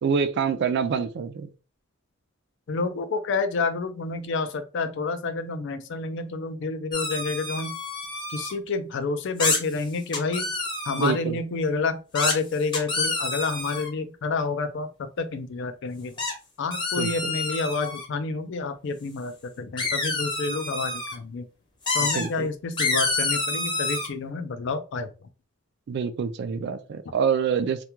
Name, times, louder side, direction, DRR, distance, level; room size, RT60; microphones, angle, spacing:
voice 1, 0.0-1.5 11.0-11.4 17.0-17.1 22.1-22.5 25.9-27.8, right 6 dB, 55° right, 0.3 m, -26 dB
voice 2, 2.7-7.8 8.3-10.5 10.9-16.1 16.6-21.5 21.9-25.1, left 4 dB, 60° left, 0.4 m, -29 dB
sound 1, 6.9-8.5 9.4-9.6 10.1-11.2 12.1-12.3 12.7-13.9 16.2-16.3 16.7-18.0 19.8-21.1 21.9-22.3 22.8-24.1, left 3 dB, 20° left, 0.7 m, -28 dB
2.3 x 2.2 x 2.9 m
head